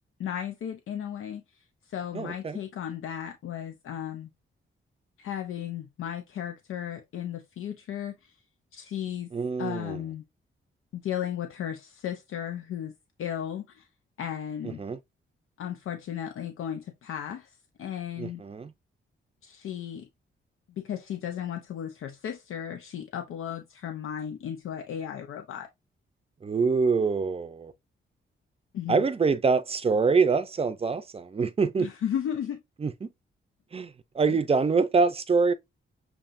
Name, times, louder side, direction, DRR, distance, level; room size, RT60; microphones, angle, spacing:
voice 1, 0.2-1.4 1.9-4.3 5.2-8.3 8.7-9.3 9.6-10.2 10.9-12.9 13.2-13.9 14.2-14.8 15.6-17.5 17.8-18.4 19.4-20.1 20.8-25.7 28.7-29.0 31.8-32.6, left 9 dB, 85° left, 0.6 m, -35 dB
voice 2, 2.1-2.6 9.3-10.0 14.6-15.0 18.2-18.7 26.4-27.7 28.9-31.9 32.8-33.1 33.7-35.5, right 4 dB, 30° right, 0.5 m, -25 dB
7.0 x 2.8 x 2.6 m
wide cardioid pair, 130°, 21 cm